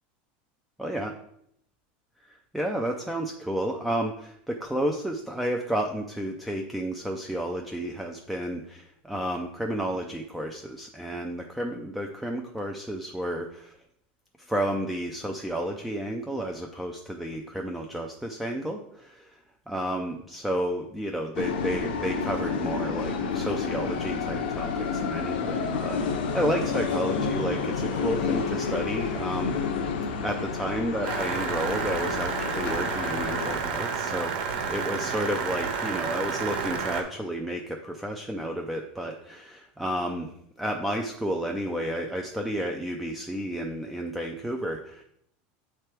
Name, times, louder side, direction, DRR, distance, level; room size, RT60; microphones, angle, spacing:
voice 1, 0.8-1.1 2.5-13.7 14.4-19.4 19.7-29.9 30.2-40.3 40.6-45.0, right 1 dB, ahead, 1 dB, 0.3 m, -31 dB
sound 1, 21.3-33.6, left 5 dB, 90° left, 1.0 m, -30 dB
sound 2, 31.0-37.0, right 5 dB, 70° right, 1.1 m, -30 dB
8.4 x 3.3 x 4.4 m, 0.72 s
supercardioid pair, 170°, 5 cm